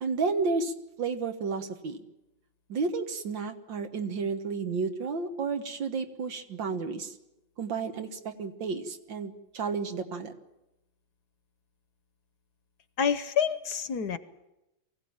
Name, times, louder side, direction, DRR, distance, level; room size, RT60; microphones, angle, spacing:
voice 1, 0.0-2.0 2.7-7.2 7.6-10.3, right 4 dB, 75° right, 7 dB, 2.2 m, -32 dB
voice 2, 13.0-14.2, left 7 dB, 60° left, 12 dB, 1.4 m, -27 dB
23.0 x 16.5 x 8.8 m, 0.95 s
omnidirectional pair, 2.1 m